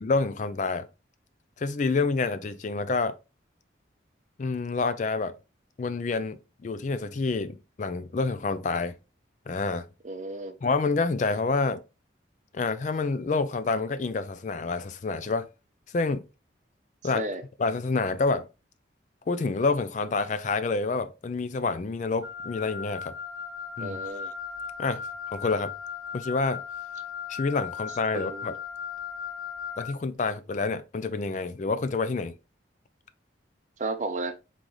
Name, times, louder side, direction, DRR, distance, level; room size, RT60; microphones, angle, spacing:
voice 1, 0.0-0.9 1.6-3.1 4.4-5.3 5.8-6.4 6.6-8.9 9.5-9.9 10.6-11.8 12.5-15.5 15.9-16.2 17.0-17.3 17.6-18.5 19.3-23.1 23.8-24.0 24.8-25.0 25.3-25.7 26.1-26.6 27.3-28.6 29.8-32.3, left 4 dB, 40° left, 0.3 m, -28 dB
voice 2, 10.0-10.6 17.1-17.4 23.8-24.3 28.1-28.5 33.8-34.4, right 2 dB, 40° right, 0.5 m, -33 dB
Wind instrument woodwind instrument, 22.2-30.0, left 7 dB, 15° right, 0.9 m, -37 dB
3.8 x 3.1 x 3.8 m
head